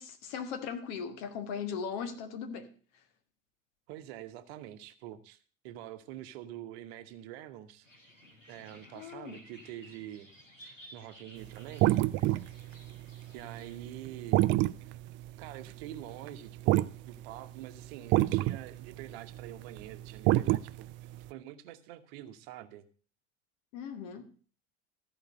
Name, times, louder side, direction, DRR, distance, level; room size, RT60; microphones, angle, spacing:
voice 1, 0.0-2.7 8.9-9.4 23.7-24.3, left 6 dB, 50° left, 1.6 m, -38 dB
voice 2, 3.9-5.4 5.6-7.9 8.5-10.3 10.6-11.9 13.3-14.5 14.8-14.9 15.4-20.9 21.3-22.9, right 12 dB, 55° right, 1.0 m, -46 dB
sound 1, 7.8-13.8, equal, 85° left, 2.3 m, -56 dB
sound 2, 11.4-17.0 17.2-17.3 17.8-17.9 18.1-21.2, right 17 dB, 35° right, 0.4 m, -27 dB
14.0 x 4.9 x 7.5 m
figure-of-eight pair, 75°, 37 cm